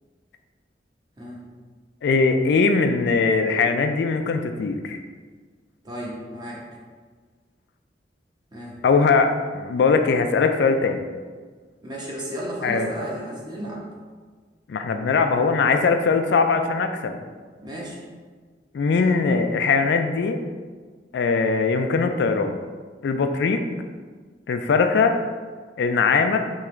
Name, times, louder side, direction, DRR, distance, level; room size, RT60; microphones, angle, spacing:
voice 1, 2.0-5.0 8.8-11.0 12.6-12.9 14.7-17.2 18.7-20.4 21.1-22.6 23.0-23.6 24.5-25.2 25.8-26.4, left 4 dB, 70° left, 6 dB, 0.3 m, -20 dB
voice 2, 5.8-6.7 8.5-8.8 11.8-13.9 17.6-18.0, right 1 dB, 25° right, -4 dB, 0.9 m, -33 dB
3.6 x 3.0 x 4.3 m, 1.5 s
head